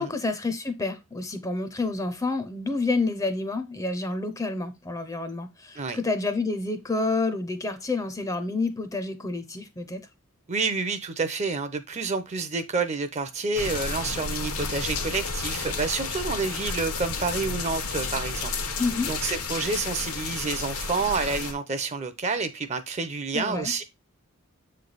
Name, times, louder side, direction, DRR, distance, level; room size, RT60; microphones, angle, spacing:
voice 1, 0.0-10.1 18.8-19.1 23.3-23.7, left 3 dB, 15° left, 0.5 m, -29 dB
voice 2, 10.5-18.5 19.1-23.8, right 4 dB, 30° right, 0.5 m, -29 dB
sound 1, 13.6-21.5, left 4 dB, 85° left, 1.0 m, -31 dB
7.3 x 3.2 x 3.9 m
head